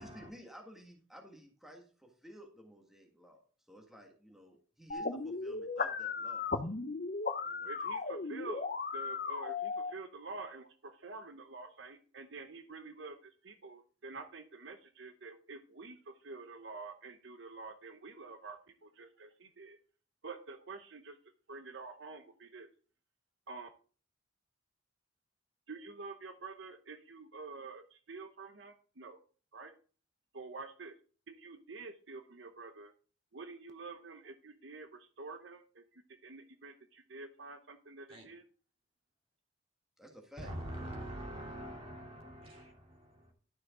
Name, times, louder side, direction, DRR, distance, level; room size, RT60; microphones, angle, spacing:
voice 1, 0.0-3.4 3.7-6.8 7.4-7.7 40.0-40.5, equal, ahead, 1 dB, 1.7 m, -54 dB
sound 1, 4.9-9.9, left 4 dB, 45° left, 0.7 m, -36 dB
voice 2, 7.6-8.7 8.9-19.8 20.2-21.2 21.5-22.7 23.5-23.7 25.7-29.2 29.5-29.8 30.3-31.0 31.3-32.9 33.3-38.4, right 3 dB, 65° right, 7 dB, 0.9 m, -48 dB
voice 3, 40.4-43.3, right 1 dB, 30° right, 0 dB, 3.1 m, -44 dB
12.5 x 6.2 x 3.7 m, 0.39 s
head